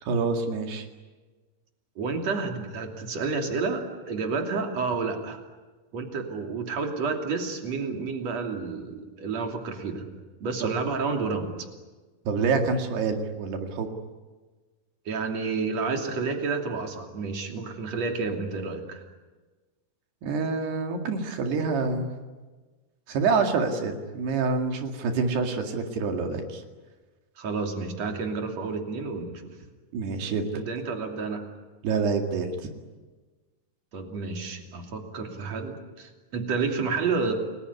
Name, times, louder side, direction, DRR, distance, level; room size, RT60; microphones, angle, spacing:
voice 1, 0.0-0.9 10.6-10.7 12.3-13.9 20.2-22.1 23.1-26.6 29.9-30.5 31.8-32.7, right 4 dB, 70° right, 4 dB, 4.2 m, -27 dB
voice 2, 2.0-5.4 5.9-10.1 10.4-11.6 15.1-19.0 27.4-29.5 30.5-31.5 33.9-37.3, right 4 dB, 40° right, 3 dB, 3.7 m, -30 dB
29.5 x 21.0 x 9.8 m, 1.3 s
omnidirectional pair, 4.9 m